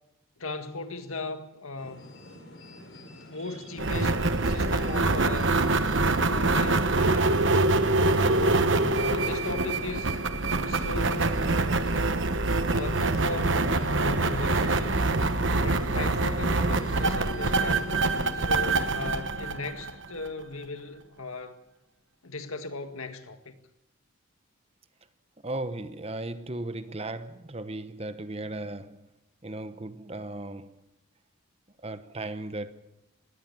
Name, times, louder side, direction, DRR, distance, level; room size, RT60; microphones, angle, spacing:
voice 1, 0.4-2.1 3.3-4.2 4.4-5.5 6.3-7.5 8.2-10.2 10.7-11.4 12.6-13.6 14.0-15.0 15.6-18.0 18.3-21.6 22.2-23.6, left 3 dB, 80° left, 1.8 m, -37 dB
sound 1, 1.8-18.5, left 1 dB, 60° left, 4.6 m, -43 dB
sound 2, 3.8-20.3, right 2 dB, 60° right, 1.1 m, -25 dB
voice 2, 25.4-29.1 29.4-30.8 31.8-32.7, right 2 dB, 30° right, 1.0 m, -36 dB
20.5 x 17.0 x 7.3 m
head